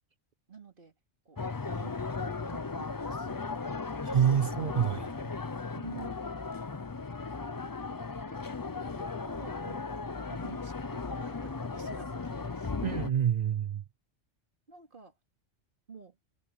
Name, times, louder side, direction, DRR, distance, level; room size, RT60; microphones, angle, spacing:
voice 1, 0.5-0.9 1.3-1.4 1.7-3.5 4.3-4.6 4.9-5.1 5.7-6.2 8.3-8.4 9.0-9.9 10.3-13.0 14.7-15.1 15.9-16.2, right 4 dB, 45° right, 2.7 m, -49 dB
sound 1, 1.4-13.1, left 4 dB, 30° left, 0.3 m, -36 dB
voice 2, 4.0-5.0 12.8-13.8, right 9 dB, 70° right, 0.4 m, -27 dB
omnidirectional pair, 1.3 m